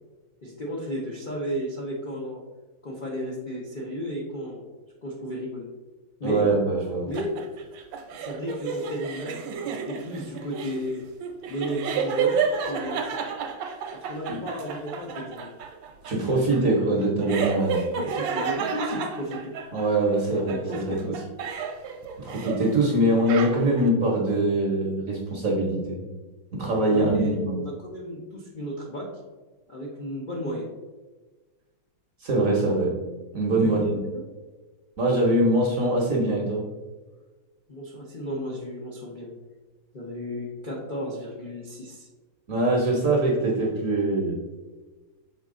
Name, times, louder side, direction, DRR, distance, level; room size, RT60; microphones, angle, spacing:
voice 1, 0.4-2.4 2.8-4.7 5.0-5.7 6.2-6.5 7.0-7.3 8.1-11.0 11.5-12.4 12.6-13.3 13.9-15.5 17.9-19.5 20.5-21.2 26.9-29.1 29.7-30.7 33.5-34.2 37.7-39.3 39.9-42.1, equal, 65° left, -3 dB, 0.5 m, -33 dB
voice 2, 6.2-7.1 14.3-14.4 16.0-17.8 19.7-21.1 22.2-26.0 26.5-27.6 32.2-32.9 33.3-34.0 35.0-36.7 42.5-44.4, right 1 dB, 55° right, -1 dB, 1.0 m, -23 dB
sound 1, 7.1-20.1 20.5-22.8 23.0-23.9, right 6 dB, 70° right, 1.4 m, -31 dB
6.5 x 4.1 x 3.6 m, 1.2 s
omnidirectional pair, 2.3 m